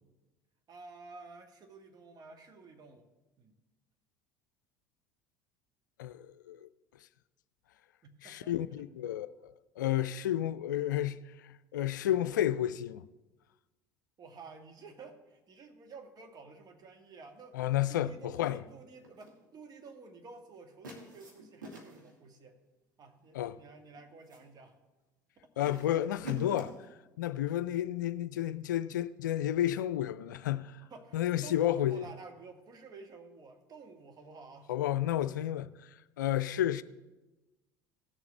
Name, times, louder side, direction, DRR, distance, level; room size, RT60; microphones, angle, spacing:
voice 1, 0.7-3.1 3.4-3.5 8.0-8.5 14.2-17.6 17.8-22.6 23.0-24.8 25.4-25.5 30.8-34.7, right 4 dB, 40° right, 1.6 m, -51 dB
voice 2, 6.0-6.7 8.2-9.3 9.8-13.0 17.5-18.6 23.3-23.6 25.6-26.7 27.2-30.8 31.1-32.0 34.7-35.9 36.2-36.8, left 12 dB, 80° left, 0.4 m, -31 dB
sound 1, 19.0-19.4 20.8-22.2 23.2-23.6 23.9-24.5 25.6-26.9, equal, 85° right, 1.7 m, -46 dB
17.0 x 7.1 x 3.2 m
hypercardioid pair, 70°, 10 cm